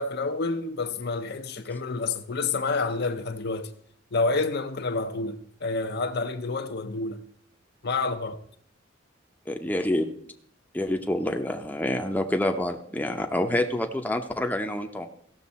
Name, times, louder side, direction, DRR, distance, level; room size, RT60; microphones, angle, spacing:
voice 1, 0.0-3.7 4.1-7.2 7.8-8.4, left 3 dB, 60° left, 0.7 m, -29 dB
voice 2, 9.5-10.1 10.7-15.1, left 1 dB, 10° left, 0.7 m, -27 dB
16.0 x 6.6 x 4.2 m
head